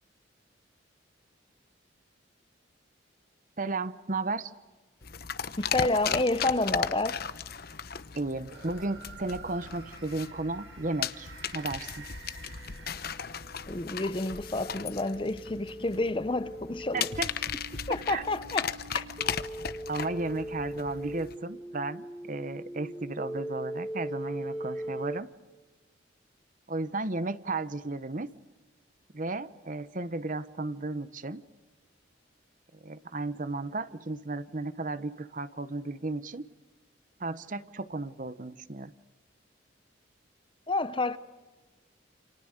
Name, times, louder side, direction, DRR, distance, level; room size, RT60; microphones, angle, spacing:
voice 1, 3.6-4.5 8.1-12.1 16.9-17.3 18.1-18.2 19.9-25.3 26.7-28.3 29.1-31.4 32.8-36.5 37.2-38.9, right 2 dB, 40° right, 0.9 m, -34 dB
sound 1, 5.0-21.3, left 7 dB, 50° left, 1.0 m, -37 dB
voice 2, 5.6-7.2 13.7-17.1 17.9-19.1 40.7-41.2, left 2 dB, 25° left, 0.8 m, -29 dB
sound 2, 8.5-13.7, right 4 dB, 65° right, 7.0 m, -50 dB
sound 3, 12.0-25.2, right 1 dB, 5° right, 2.0 m, -41 dB
29.0 x 28.0 x 6.6 m
head